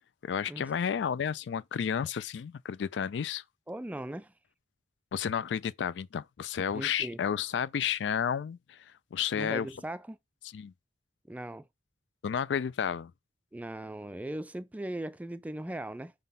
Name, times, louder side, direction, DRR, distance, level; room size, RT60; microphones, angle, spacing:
voice 1, 0.2-3.4 5.1-8.8 9.1-9.7 10.5-10.7 12.2-13.1, left 7 dB, 80° left, 0.4 m, -31 dB
voice 2, 3.7-4.3 6.7-7.2 9.3-10.2 11.3-11.7 13.5-16.1, right 1 dB, 10° right, 0.3 m, -39 dB
5.0 x 3.9 x 5.4 m
head